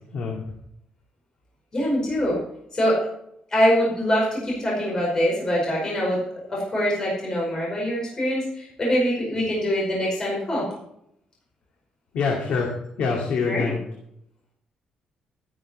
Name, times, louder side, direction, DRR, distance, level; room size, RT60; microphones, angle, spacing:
voice 1, 0.1-0.4 12.1-12.7 13.0-13.8, left 5 dB, 70° left, 0 dB, 2.4 m, -25 dB
voice 2, 1.7-2.4 2.7-3.1 3.5-6.2 6.5-10.7 13.4-13.8, equal, 25° left, -4 dB, 4.9 m, -23 dB
12.5 x 11.5 x 4.3 m, 0.76 s
cardioid pair, 155°, 2 cm